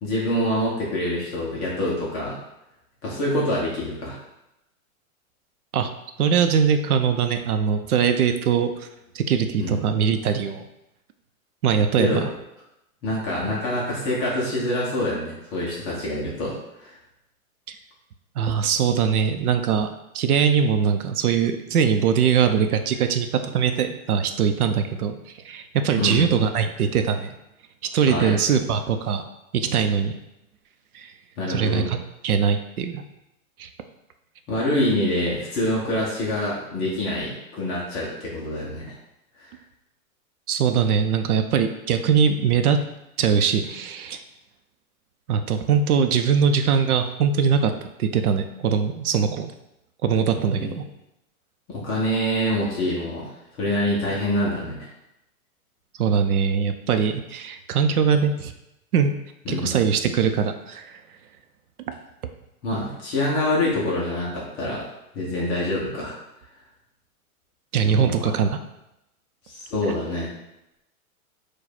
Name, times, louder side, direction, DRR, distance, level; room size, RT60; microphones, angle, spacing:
voice 1, 0.0-2.4 3.0-4.2 9.6-9.8 12.0-12.2 13.0-16.9 26.0-26.3 27.9-28.3 31.4-31.9 34.5-38.9 39.4-39.5 50.5-50.7 51.7-53.3 53.6-54.9 59.5-59.9 62.6-64.9 65.1-66.1 67.8-68.3 69.5-70.3, left 1 dB, 15° left, -5 dB, 0.4 m, -26 dB
voice 2, 6.2-8.9 9.1-10.6 11.6-12.3 17.7-17.8 18.4-23.3 23.5-25.2 25.4-27.3 27.9-30.2 30.9-31.1 31.5-32.0 32.2-33.0 33.6-33.7 40.5-42.8 43.2-44.2 45.3-47.7 48.0-49.5 50.0-50.8 56.0-58.5 58.9-59.1 59.5-61.0 67.7-68.6, right 7 dB, 90° right, 8 dB, 0.6 m, -21 dB
4.8 x 2.3 x 4.3 m, 0.88 s
hypercardioid pair, 145°, 43 cm